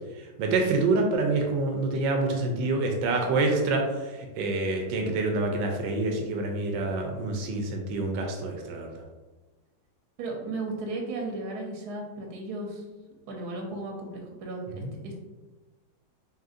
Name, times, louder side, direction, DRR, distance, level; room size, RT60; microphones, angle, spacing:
voice 1, 0.4-8.9 14.8-14.9, right 3 dB, 85° right, 2 dB, 1.3 m, -27 dB
voice 2, 10.2-14.6 14.9-15.1, right 2 dB, 70° right, 0 dB, 1.2 m, -35 dB
5.6 x 2.7 x 2.5 m, 1.2 s
omnidirectional pair, 1.9 m